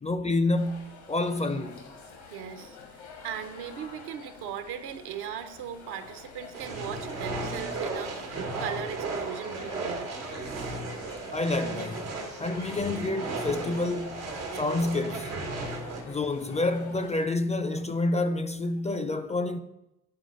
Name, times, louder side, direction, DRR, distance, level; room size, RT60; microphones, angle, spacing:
voice 1, 0.0-1.9 11.3-12.1 12.4-14.3 14.6-15.4 16.0-19.6, left 2 dB, 15° left, 0.4 m, -28 dB
sound 1, 0.5-17.3, left 4 dB, 70° left, 1.2 m, -47 dB
voice 2, 2.3-2.8 3.2-10.1, right 8 dB, 75° right, 0.7 m, -38 dB
sound 2, 6.5-16.0, right 3 dB, 90° right, 1.1 m, -35 dB
9.6 x 3.8 x 3.1 m
hypercardioid pair, 45°, 41 cm